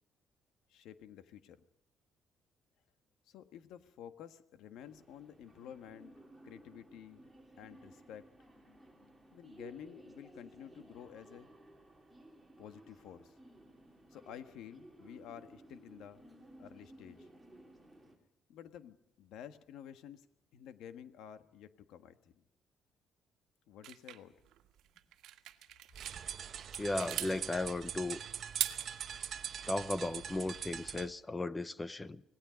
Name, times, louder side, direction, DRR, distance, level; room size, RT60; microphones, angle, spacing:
voice 1, 0.7-1.6 3.3-6.1 6.4-7.3 7.6-8.3 9.3-11.5 12.6-13.3 14.1-16.2 16.6-17.3 18.5-20.3 20.5-22.4 23.7-24.3, left 9 dB, 80° left, 1.5 m, -51 dB
sound 1, 4.8-18.2, right 1 dB, 5° right, 3.2 m, -57 dB
sound 2, 23.8-26.2 26.6-27.3 28.4-29.3, right 13 dB, 80° right, 1.5 m, -40 dB
sound 3, 25.9-31.1, right 8 dB, 40° right, 1.1 m, -43 dB
voice 2, 26.8-28.2 29.7-32.2, left 2 dB, 15° left, 0.7 m, -36 dB
26.0 x 19.0 x 5.2 m
cardioid pair, 165°, 0 cm